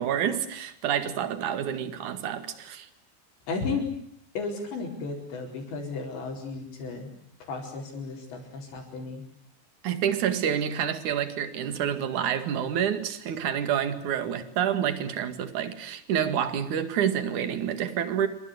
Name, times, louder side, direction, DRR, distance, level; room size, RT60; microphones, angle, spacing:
voice 1, 0.0-2.9 9.8-18.3, right 9 dB, 50° right, 2.9 m, -28 dB
voice 2, 3.5-3.9 4.3-7.1 7.4-9.2, left 4 dB, 70° left, 6.8 m, -34 dB
28.0 x 25.5 x 8.0 m
omnidirectional pair, 5.3 m